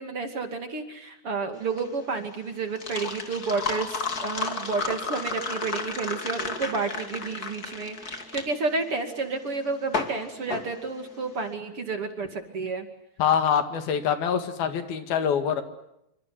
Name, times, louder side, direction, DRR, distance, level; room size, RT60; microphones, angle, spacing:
voice 1, 0.0-12.9, right 4 dB, 40° right, 6 dB, 2.9 m, -31 dB
sound 1, 1.6-11.4, left 4 dB, 30° left, 2.5 m, -33 dB
voice 2, 13.2-15.6, left 8 dB, 80° left, 8 dB, 3.9 m, -24 dB
28.0 x 26.0 x 7.7 m, 0.83 s
omnidirectional pair, 4.3 m